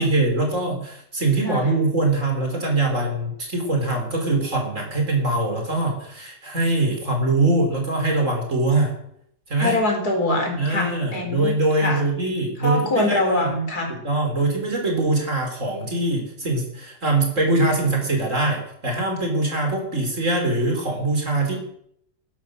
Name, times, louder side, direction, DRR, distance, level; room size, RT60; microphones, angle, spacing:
voice 1, 0.0-8.9 9.5-9.8 10.6-13.5 13.9-21.6, right 2 dB, 50° right, 2 dB, 4.3 m, -23 dB
voice 2, 9.6-12.0 12.6-13.9, left 2 dB, 65° left, 2 dB, 4.6 m, -24 dB
15.0 x 12.0 x 6.6 m, 0.70 s
omnidirectional pair, 1.8 m